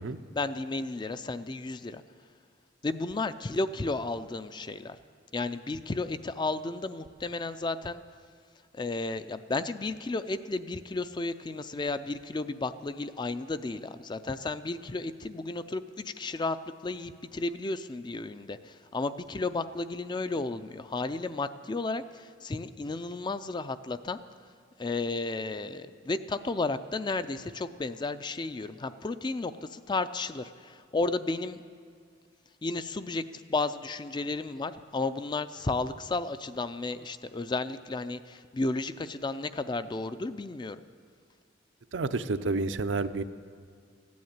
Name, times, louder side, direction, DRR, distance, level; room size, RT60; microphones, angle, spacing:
voice 1, 0.3-2.0 2.8-5.0 5.3-8.0 8.7-16.6 16.8-24.2 24.8-31.6 32.6-40.8, left 3 dB, 25° left, 12 dB, 0.4 m, -33 dB
voice 2, 41.9-43.2, right 3 dB, 75° right, 10 dB, 0.6 m, -29 dB
15.0 x 9.4 x 8.8 m, 2.1 s
head